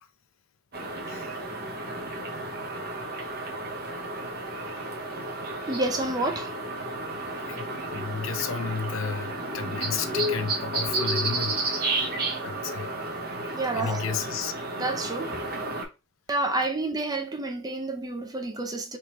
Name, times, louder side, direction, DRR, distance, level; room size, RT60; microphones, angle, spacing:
sound 1, 0.7-15.9, right 2 dB, 50° right, 0.9 m, -32 dB
voice 1, 5.7-6.5 13.5-14.2 14.8-15.4 16.3-19.0, right 2 dB, 20° right, 0.5 m, -29 dB
voice 2, 7.5-12.9 13.7-14.5, left 5 dB, 70° left, 0.5 m, -33 dB
3.5 x 2.9 x 2.9 m
head